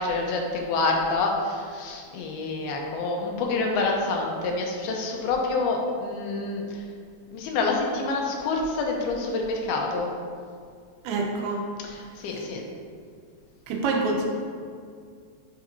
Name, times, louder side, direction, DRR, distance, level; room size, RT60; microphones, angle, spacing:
voice 1, 0.0-6.8 7.3-10.1 11.8-12.6, left 3 dB, 90° left, 0 dB, 2.8 m, -27 dB
voice 2, 11.0-11.6 13.7-14.3, right 3 dB, 85° right, 1 dB, 2.7 m, -26 dB
7.9 x 7.1 x 2.7 m, 2.1 s
omnidirectional pair, 4.3 m